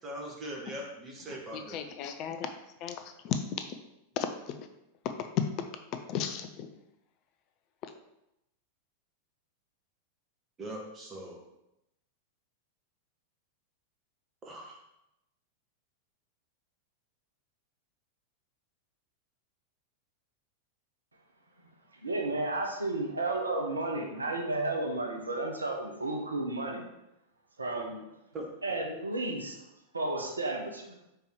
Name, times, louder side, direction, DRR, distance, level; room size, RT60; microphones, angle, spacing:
voice 1, 0.0-1.8 10.6-11.4 14.4-14.8 28.3-28.5, right 1 dB, 25° right, -1 dB, 1.7 m, -41 dB
voice 2, 1.7-2.5 2.8-3.0 3.2-3.4 4.2-4.7 5.2-5.4 6.1-6.7, left 8 dB, 40° left, 8 dB, 0.5 m, -33 dB
voice 3, 22.0-26.8 27.6-28.0 28.6-29.6 29.9-31.1, right 2 dB, 80° right, 1 dB, 1.0 m, -32 dB
5.3 x 4.5 x 4.6 m, 0.88 s
figure-of-eight pair, 90°, 0 cm